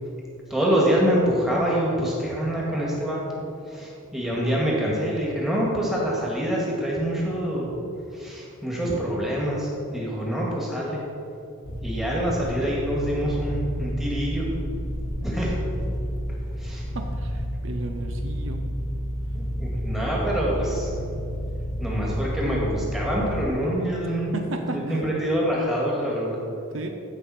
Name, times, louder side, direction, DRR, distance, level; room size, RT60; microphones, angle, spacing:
voice 1, 0.5-7.7 8.1-11.0 11.8-14.5 15.2-15.6 16.6-16.8 19.3-21.2 21.8-24.3 24.6-26.4, equal, ahead, -5 dB, 1.9 m, -26 dB
sound 1, 11.6-23.5, equal, 60° left, 1.2 m, -30 dB
voice 2, 16.9-18.6 24.3-25.2 26.7-26.9, right 2 dB, 65° right, 4 dB, 0.7 m, -33 dB
15.5 x 5.4 x 4.3 m, 2.7 s
head